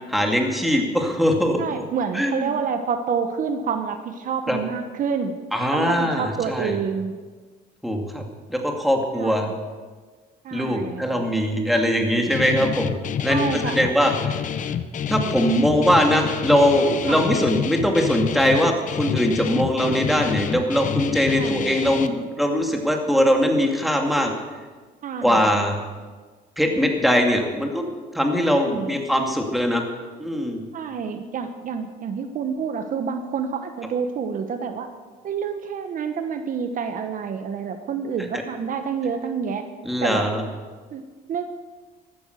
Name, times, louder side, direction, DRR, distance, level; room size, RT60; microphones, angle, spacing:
voice 1, 0.1-1.6 2.1-2.4 4.5-4.6 5.5-6.7 7.8-8.2 8.5-9.5 10.5-12.9 13.2-14.1 15.1-24.3 25.2-25.8 26.6-27.8 28.1-29.9 30.2-30.6 39.8-40.4, equal, ahead, 2 dB, 2.4 m, -21 dB
voice 2, 1.6-5.4 5.7-7.1 9.1-9.5 10.4-11.2 13.3-13.9 17.1-17.2 21.3-21.7 25.0-25.5 28.4-29.0 30.7-34.9 35.2-39.7 40.0-40.3 40.9-41.5, right 6 dB, 55° right, 7 dB, 1.2 m, -28 dB
Guitar, 12.3-22.1, left 8 dB, 50° left, 0.8 m, -28 dB
14.0 x 12.5 x 6.7 m, 1.4 s
cardioid pair, 110°, 17 cm